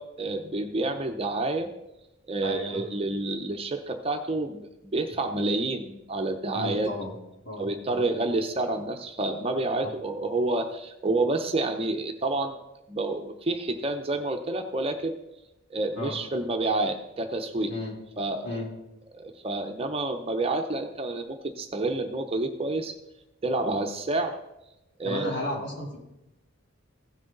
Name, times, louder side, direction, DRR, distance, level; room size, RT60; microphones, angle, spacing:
voice 1, 0.0-1.7 2.3-6.9 7.6-12.6 12.9-15.2 15.7-17.7 18.2-18.6 19.1-22.9 23.4-24.4 25.0-25.3, right 2 dB, 25° right, 5 dB, 0.6 m, -29 dB
voice 2, 2.4-2.8 6.5-7.1 7.4-8.0 9.8-9.9 16.0-16.2 17.7-17.9 18.4-18.7 25.0-26.0, left 1 dB, 60° left, -4 dB, 3.5 m, -33 dB
16.0 x 6.3 x 3.9 m, 0.91 s
head